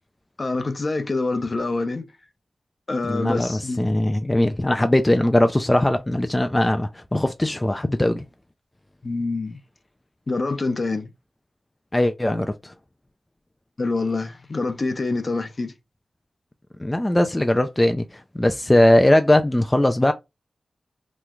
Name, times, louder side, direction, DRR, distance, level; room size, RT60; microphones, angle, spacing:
voice 1, 0.4-2.1 2.9-4.0 9.0-9.6 10.3-11.1 13.8-15.7, left 3 dB, 50° left, 0.7 m, -26 dB
voice 2, 3.0-8.2 11.9-12.7 16.8-20.1, left 1 dB, 15° left, 0.4 m, -20 dB
3.1 x 2.2 x 3.6 m
cardioid pair, 55°, 0 cm